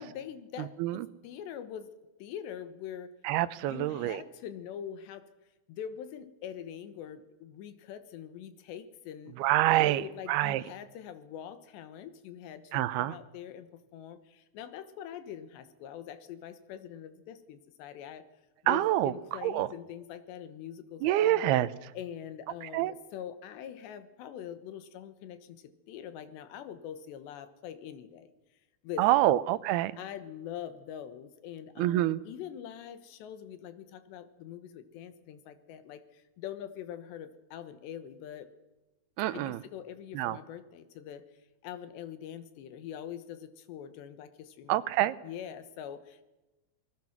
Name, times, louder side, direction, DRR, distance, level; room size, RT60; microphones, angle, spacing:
voice 1, 0.0-1.9 2.2-3.1 3.6-5.2 5.7-9.4 9.8-18.3 18.6-21.5 21.9-28.3 28.8-29.3 30.0-38.5 39.3-41.3 41.6-46.2, left 9 dB, 85° left, 11 dB, 3.6 m, -44 dB
voice 2, 3.2-4.2 9.4-10.0 10.3-10.6 12.7-13.1 18.7-19.1 19.4-19.7 21.0-21.7 22.7-22.9 29.0-29.9 31.8-32.2 39.2-39.6 40.1-40.4 44.7-45.1, right 14 dB, 75° right, 15 dB, 2.6 m, -26 dB
27.5 x 19.5 x 6.0 m, 1.0 s
omnidirectional pair, 4.8 m